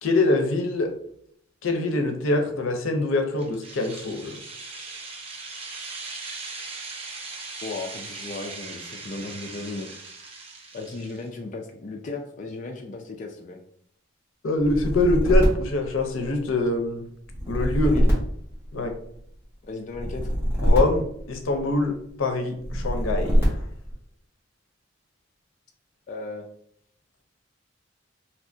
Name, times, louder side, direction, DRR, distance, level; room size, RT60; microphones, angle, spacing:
voice 1, 0.0-0.9 1.6-4.4 14.4-17.1 17.5-18.0 18.7-18.9 20.6-23.6, left 2 dB, 85° left, 5 dB, 0.6 m, -24 dB
sound 1, 3.4-11.3, right 3 dB, 30° right, 0.5 m, -39 dB
voice 2, 7.6-10.2 10.7-13.6 17.8-18.1 19.6-20.3 26.1-26.5, left 3 dB, 40° left, 2 dB, 0.3 m, -36 dB
sound 2, 14.6-16.6 17.3-19.2 19.9-21.8 22.6-23.9, equal, 10° right, 1.4 m, -24 dB
3.3 x 2.7 x 2.6 m, 0.68 s
head